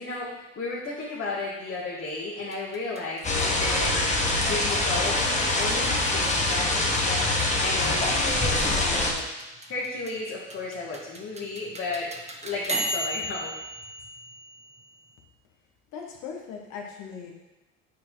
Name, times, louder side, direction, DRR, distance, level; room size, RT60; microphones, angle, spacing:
voice 1, 0.0-3.9 4.4-7.3 7.6-9.3 9.7-12.1 12.4-13.5, left 3 dB, 45° left, -6 dB, 2.0 m, -33 dB
sound 1, 2.4-15.1, right 1 dB, 20° right, 1.3 m, -38 dB
sound 2, 3.2-9.1, left 2 dB, 20° left, 1.6 m, -24 dB
voice 2, 15.9-17.3, left 6 dB, 60° left, 1 dB, 1.7 m, -39 dB
9.3 x 4.5 x 4.0 m, 1.1 s
hypercardioid pair, 75°, 31 cm